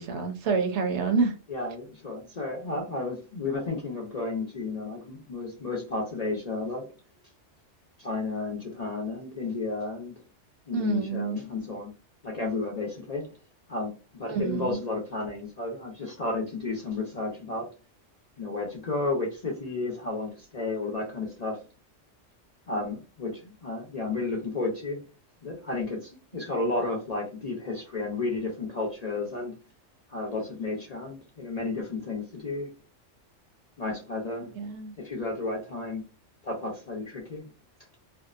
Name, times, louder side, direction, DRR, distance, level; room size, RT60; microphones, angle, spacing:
voice 1, 0.0-1.3 10.7-11.5 14.3-14.8 34.6-35.0, right 5 dB, 70° right, 0.9 m, -28 dB
voice 2, 1.5-6.9 8.0-10.2 10.7-11.9 12.2-13.3 13.7-17.7 18.4-21.6 22.7-25.0 25.4-29.6 30.1-32.7 33.8-34.5 35.0-36.0 36.4-37.5, left 3 dB, 50° left, 0.5 m, -32 dB
2.7 x 2.1 x 2.3 m
omnidirectional pair, 1.3 m